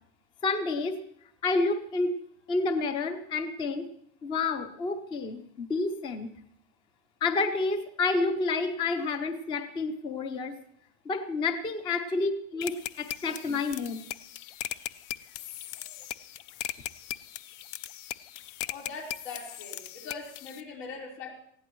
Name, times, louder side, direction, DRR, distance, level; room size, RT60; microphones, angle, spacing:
voice 1, 0.4-1.0 1.4-2.1 2.5-3.9 4.2-6.3 7.2-10.6 11.1-14.0, left 3 dB, 15° left, 9 dB, 0.4 m, -29 dB
sound 1, 12.6-20.6, left 13 dB, 65° left, 0.6 m, -39 dB
voice 2, 15.7-16.1 18.7-21.3, left 4 dB, 85° left, -1 dB, 4.2 m, -42 dB
19.5 x 15.0 x 3.1 m, 0.70 s
supercardioid pair, 165°, 39 cm